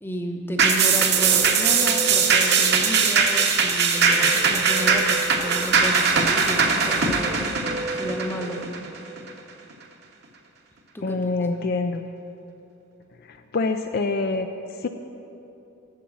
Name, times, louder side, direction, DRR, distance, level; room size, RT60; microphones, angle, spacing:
voice 1, 0.0-7.3 8.0-8.9 10.9-11.2, equal, 10° left, 3 dB, 0.7 m, -32 dB
sound 1, 0.6-9.3, right 2 dB, 20° right, 0.9 m, -35 dB
sound 2, 0.6-9.3 9.7-9.8, right 5 dB, 50° right, 0.9 m, -20 dB
voice 2, 11.0-12.1 13.3-14.5 14.8-14.9, left 3 dB, 45° left, 7 dB, 0.4 m, -26 dB
10.0 x 6.9 x 7.4 m, 2.9 s
head